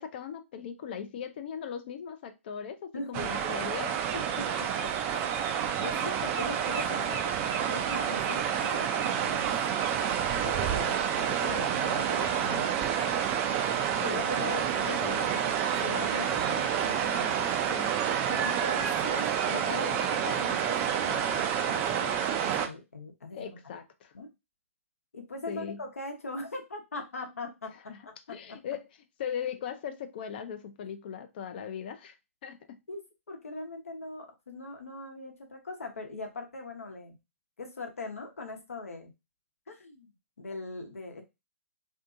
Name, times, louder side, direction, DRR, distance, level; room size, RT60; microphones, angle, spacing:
voice 1, 0.0-3.9 14.0-15.6 17.7-18.0 23.3-24.1 25.5-25.8 27.9-28.0 28.3-28.9 29.2-32.2 32.4-32.8, left 7 dB, 45° left, 0.5 m, -39 dB
voice 2, 2.9-3.5 4.1-5.2 5.8-9.4 10.3-13.0 14.1-15.2 15.8-17.5 18.3-23.6 24.1-24.3 25.1-28.6 32.9-37.2 37.6-39.1 39.7-41.2, left 3 dB, 75° left, 0.9 m, -41 dB
sound 1, 3.1-22.7, right 8 dB, 25° right, 0.3 m, -29 dB
2.6 x 2.5 x 2.4 m
figure-of-eight pair, 130°, 8 cm